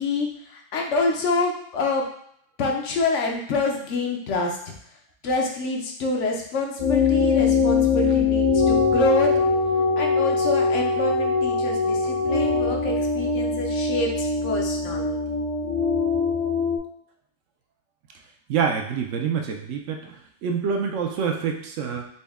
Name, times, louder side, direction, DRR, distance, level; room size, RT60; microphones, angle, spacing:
voice 1, 0.0-2.0 2.6-4.6 5.2-9.3 10.0-15.2, left 3 dB, 70° left, 1 dB, 0.9 m, -26 dB
sound 1, 6.8-16.8, left 4 dB, 35° left, 0.6 m, -22 dB
voice 2, 18.5-22.1, right 6 dB, 75° right, 3 dB, 0.9 m, -26 dB
4.1 x 2.2 x 3.4 m, 0.68 s
omnidirectional pair, 1.3 m